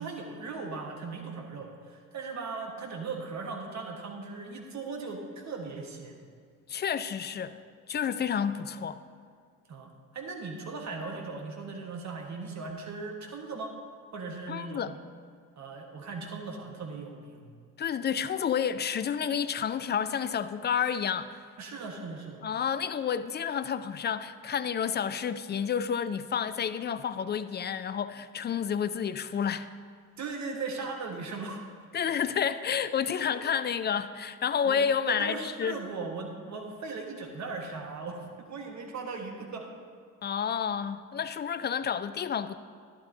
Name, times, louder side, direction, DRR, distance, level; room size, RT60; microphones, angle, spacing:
voice 1, 0.0-6.2 9.7-13.7 14.1-15.0 15.6-17.5 21.6-22.4 30.2-31.6 34.6-34.8 35.1-39.7, right 4 dB, 40° right, 2 dB, 1.5 m, -38 dB
voice 2, 6.7-7.6 7.9-9.0 14.5-14.9 17.8-21.4 22.4-29.7 31.9-35.8 40.2-42.6, left 7 dB, 25° left, 13 dB, 0.4 m, -30 dB
12.0 x 11.0 x 2.8 m, 2.1 s
figure-of-eight pair, 45°, 43 cm